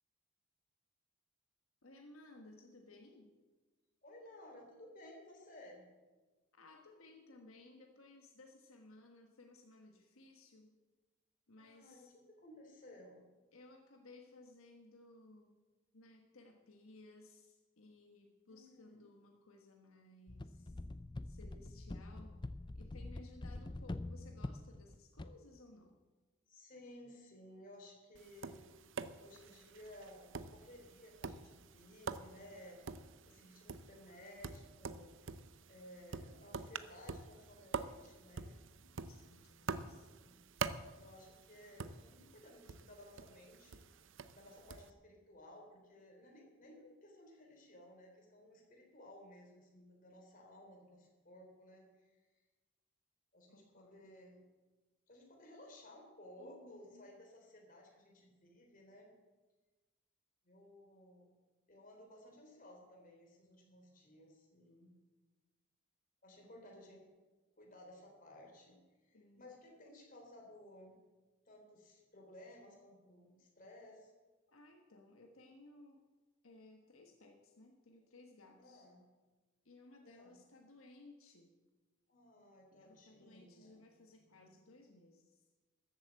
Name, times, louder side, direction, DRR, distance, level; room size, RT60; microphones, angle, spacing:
voice 1, 1.8-3.3 6.5-10.7 11.5-12.1 13.5-15.6 15.9-20.8 21.2-22.4 22.7-26.0 39.1-40.1 53.5-54.3 56.4-57.1 66.6-66.8 69.1-69.5 74.5-76.0 76.4-78.9 79.6-81.6 82.7-85.4, left 2 dB, 80° left, 2 dB, 1.4 m, -60 dB
voice 2, 4.0-5.9 11.6-13.2 18.5-19.0 26.5-28.6 29.2-32.8 33.3-35.3 35.7-38.5 39.6-40.5 41.0-43.8 44.3-52.2 53.3-54.4 55.1-59.1 60.4-61.3 61.7-64.9 66.2-67.0 67.6-68.8 69.0-71.0 71.5-74.1 78.6-79.1 80.0-80.4 82.1-83.8 84.1-84.3, left 1 dB, 40° left, 1 dB, 3.6 m, -57 dB
sound 1, 20.3-25.3, left 2 dB, 20° left, 0.4 m, -45 dB
Tap, 28.2-44.9, right 5 dB, 60° right, 0.6 m, -47 dB
13.5 x 8.3 x 7.6 m, 1.2 s
head